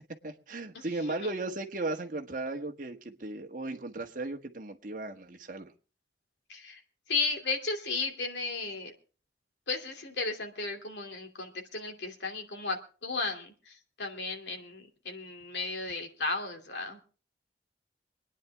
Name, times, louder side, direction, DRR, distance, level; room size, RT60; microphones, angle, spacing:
voice 1, 0.2-5.7, right 2 dB, 45° right, 4 dB, 1.6 m, -36 dB
voice 2, 6.5-6.8 7.1-8.9 9.7-17.0, left 3 dB, 80° left, 4 dB, 2.8 m, -34 dB
25.5 x 9.9 x 3.6 m, 0.37 s
head